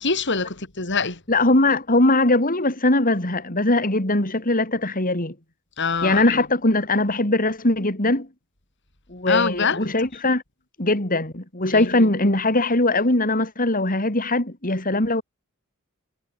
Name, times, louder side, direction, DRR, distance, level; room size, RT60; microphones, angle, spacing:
voice 1, 0.0-1.2 5.8-6.4 9.3-9.9 11.7-12.1, left 4 dB, 55° left, 5.8 m, -25 dB
voice 2, 1.3-5.3 6.0-8.3 9.1-10.4 10.8-15.2, left 2 dB, 40° left, 5.0 m, -21 dB
head